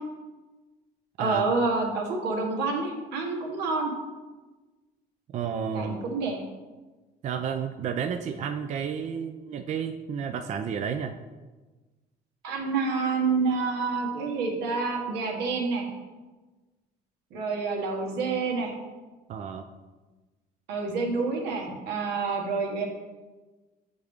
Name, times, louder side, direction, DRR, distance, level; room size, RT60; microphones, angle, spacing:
voice 1, 1.2-3.9 5.7-6.4 12.4-15.8 17.3-18.7 20.7-22.9, right 4 dB, 85° right, 1 dB, 1.2 m, -28 dB
voice 2, 5.3-6.0 7.2-11.1 19.3-19.7, right 7 dB, 45° right, 6 dB, 0.4 m, -31 dB
7.9 x 3.6 x 3.5 m, 1.2 s
cardioid pair, 110°, 17 cm